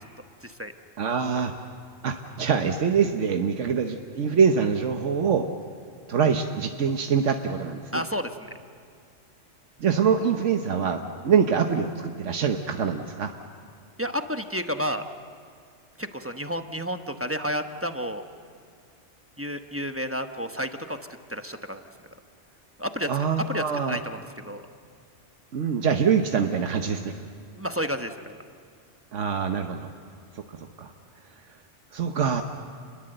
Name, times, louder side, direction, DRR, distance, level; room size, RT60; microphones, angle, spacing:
voice 1, 0.4-0.7 7.9-8.5 14.0-15.0 16.0-18.2 19.4-21.0 21.3-21.8 22.8-23.1 23.5-24.6 27.6-28.4, equal, 10° right, 6 dB, 0.9 m, -31 dB
voice 2, 1.0-1.5 2.0-5.5 6.1-8.0 9.8-13.3 23.1-24.0 25.5-27.1 29.1-29.9 30.3-30.4 30.8-30.9 31.9-32.4, right 6 dB, 85° right, 5 dB, 1.4 m, -24 dB
29.0 x 21.5 x 7.9 m, 2.3 s
omnidirectional pair, 1.2 m